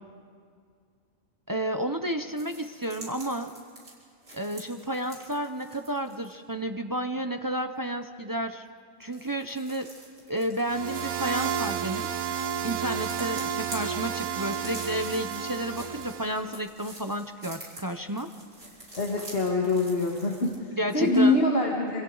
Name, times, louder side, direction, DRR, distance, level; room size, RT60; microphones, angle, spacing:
voice 1, 1.5-3.5 4.3-8.6 9.0-9.9 10.3-12.4 12.6-18.3 20.8-21.4, right 1 dB, 30° right, 7 dB, 0.4 m, -31 dB
sound 1, 2.4-6.3 9.0-20.6, right 1 dB, 60° right, 4.1 m, -46 dB
sound 2, 10.6-16.5, right 8 dB, 85° right, 1.2 m, -32 dB
voice 2, 19.0-22.0, left 2 dB, 45° left, -2 dB, 1.9 m, -24 dB
26.5 x 26.0 x 3.9 m, 2.1 s
omnidirectional pair, 1.4 m